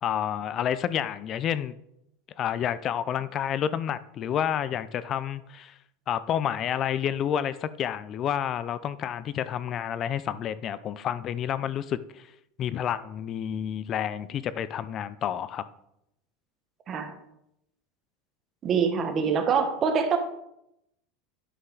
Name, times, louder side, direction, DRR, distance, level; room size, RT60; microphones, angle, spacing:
voice 1, 0.0-1.7 2.4-5.8 6.1-12.3 12.6-15.7, left 9 dB, 40° left, 16 dB, 0.5 m, -29 dB
voice 2, 18.6-20.2, right 6 dB, 35° right, 6 dB, 1.3 m, -24 dB
9.7 x 5.6 x 3.9 m, 0.81 s
supercardioid pair, 115°, 0 cm